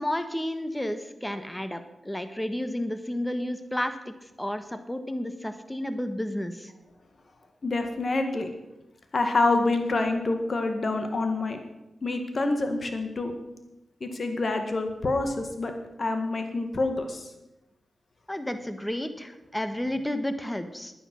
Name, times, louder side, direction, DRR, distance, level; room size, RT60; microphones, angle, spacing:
voice 1, 0.0-4.1 4.4-6.7 18.3-20.9, left 1 dB, 10° left, 9 dB, 1.4 m, -31 dB
voice 2, 7.6-8.5 9.1-11.6 12.0-13.3 14.0-15.7 16.0-17.3, left 2 dB, 55° left, 6 dB, 2.0 m, -27 dB
11.0 x 10.0 x 6.5 m, 0.97 s
cardioid pair, 55°, 0 cm